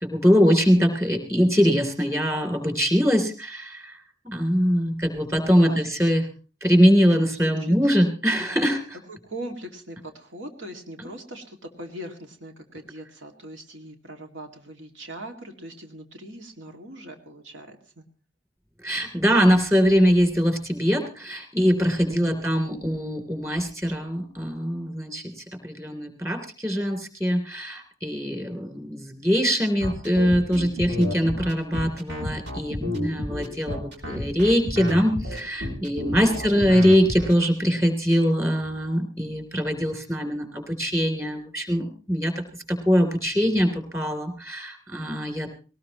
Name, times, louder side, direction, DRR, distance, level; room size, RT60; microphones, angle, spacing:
voice 1, 0.0-4.0 4.2-6.2 6.6-8.8 18.8-42.3 42.7-45.5, equal, 15° right, 5 dB, 3.2 m, -22 dB
voice 2, 5.4-5.9 7.3-7.8 9.1-18.0 22.1-22.4 36.2-36.8, right 1 dB, 85° right, 4 dB, 2.3 m, -40 dB
sound 1, 29.8-37.3, left 1 dB, 65° right, 3.3 m, -31 dB
19.5 x 19.0 x 3.0 m, 0.35 s
head